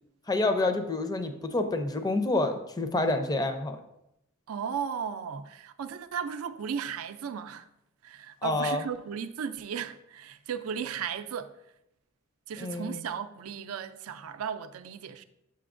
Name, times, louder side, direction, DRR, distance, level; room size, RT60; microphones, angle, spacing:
voice 1, 0.3-3.8 8.4-8.8 12.6-13.0, left 2 dB, 20° left, 0.5 m, -28 dB
voice 2, 4.5-7.7 8.0-11.5 12.5-15.2, right 7 dB, 90° right, 0.4 m, -35 dB
6.9 x 6.6 x 2.5 m
head